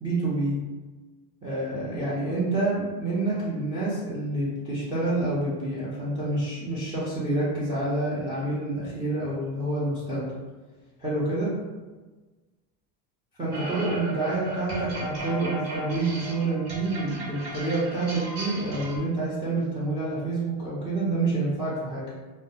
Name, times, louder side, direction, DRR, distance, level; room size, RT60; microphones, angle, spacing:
voice 1, 0.0-0.6 1.4-10.3 11.0-11.6 13.4-22.1, right 2 dB, 10° right, -7 dB, 0.3 m, -28 dB
sound 1, 13.5-19.0, right 1 dB, 50° right, 1.0 m, -35 dB
2.3 x 2.0 x 2.7 m, 1.3 s
supercardioid pair, 120°, 50 cm